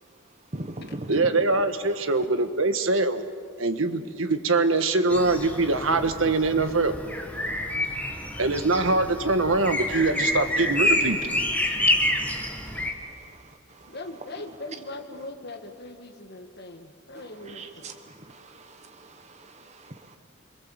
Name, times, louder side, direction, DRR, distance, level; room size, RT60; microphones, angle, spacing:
voice 1, 0.5-1.3 12.0-13.4 13.7-13.9 17.5-20.2, right 1 dB, 35° right, 6 dB, 1.3 m, -41 dB
voice 2, 1.1-3.2 3.6-6.9 8.4-11.2, right 3 dB, 80° right, 8 dB, 1.5 m, -23 dB
sound 1, 5.1-12.9, left 1 dB, 10° left, 1.8 m, -28 dB
voice 3, 13.8-17.9, left 2 dB, 55° left, 5 dB, 2.1 m, -40 dB
27.5 x 22.0 x 7.5 m, 2.2 s
head